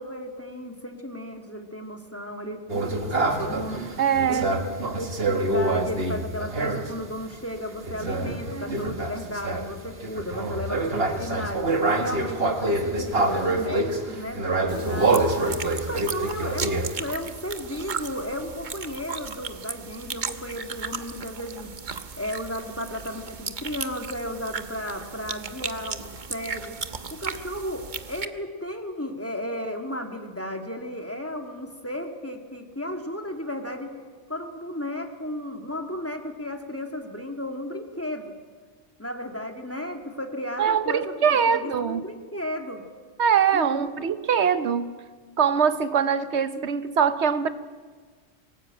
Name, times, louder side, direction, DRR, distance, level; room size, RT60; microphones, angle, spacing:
voice 1, 0.0-3.8 4.3-15.3 15.8-21.7 22.2-26.8 27.1-33.9 34.3-38.3 39.0-42.8 43.5-43.9, left 1 dB, 10° left, 4 dB, 2.0 m, -34 dB
sound 1, 2.7-7.0 7.8-17.0, right 2 dB, 65° right, 2.0 m, -26 dB
voice 2, 4.0-4.5 40.6-42.0 43.2-44.9 45.4-47.5, right 7 dB, 85° right, 12 dB, 1.2 m, -22 dB
sound 2, 14.7-28.3, right 5 dB, 45° right, 1.1 m, -36 dB
23.5 x 18.5 x 8.8 m, 1.5 s
omnidirectional pair, 1.1 m